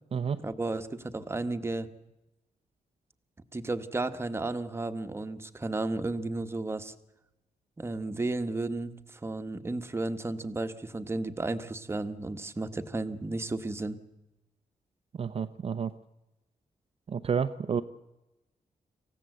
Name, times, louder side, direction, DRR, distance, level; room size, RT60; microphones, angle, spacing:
voice 1, 0.4-1.9 3.5-6.9 7.8-14.0, right 2 dB, 20° right, 9 dB, 1.2 m, -33 dB
voice 2, 15.2-15.9 17.1-17.8, right 6 dB, 45° right, 8 dB, 0.7 m, -30 dB
27.0 x 15.5 x 7.7 m, 0.96 s
wide cardioid pair, 140°, 14 cm